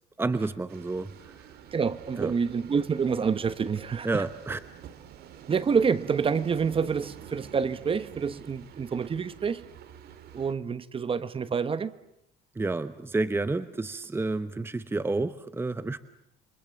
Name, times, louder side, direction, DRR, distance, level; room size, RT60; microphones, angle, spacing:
voice 1, 0.2-1.3 2.2-2.3 4.0-4.6 12.6-16.0, right 3 dB, 15° right, 13 dB, 1.0 m, -30 dB
sound 1, 0.7-10.5, right 9 dB, 70° right, 2.4 m, -48 dB
voice 2, 1.7-4.2 5.5-9.7 10.3-11.9, right 6 dB, 30° right, 15 dB, 1.2 m, -27 dB
28.5 x 25.0 x 7.2 m, 0.78 s
cardioid pair, 110°, 17 cm